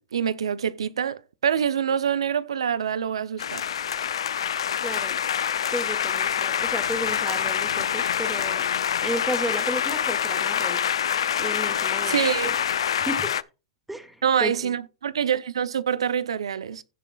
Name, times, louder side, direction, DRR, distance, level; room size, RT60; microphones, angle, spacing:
voice 1, 0.0-3.6 12.0-12.5 14.2-16.8, right 8 dB, 90° right, 0.6 m, -25 dB
sound 1, 3.4-13.4, left 9 dB, 85° left, 0.4 m, -26 dB
voice 2, 4.8-5.2 5.6-10.8 11.4-12.5 13.0-13.3 13.9-14.7, right 1 dB, 5° right, 2.0 m, -33 dB
16.0 x 6.8 x 2.3 m
hypercardioid pair, 115°, 3 cm